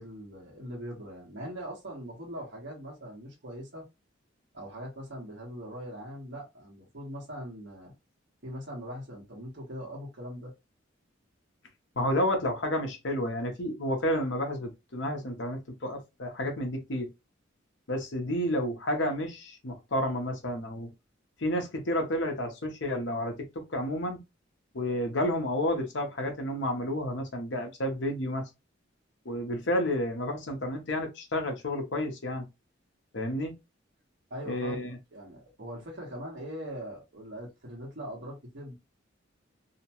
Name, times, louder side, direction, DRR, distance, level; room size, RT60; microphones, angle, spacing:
voice 1, 0.0-3.9 4.5-7.9 8.4-10.5 34.3-38.8, equal, 65° right, 1.1 m, -41 dB
voice 2, 12.0-17.1 17.9-20.9 21.4-24.2 24.7-28.4 29.2-32.5 33.1-33.5 34.5-34.9, left 1 dB, 70° left, 0.8 m, -30 dB
2.8 x 2.1 x 2.9 m
head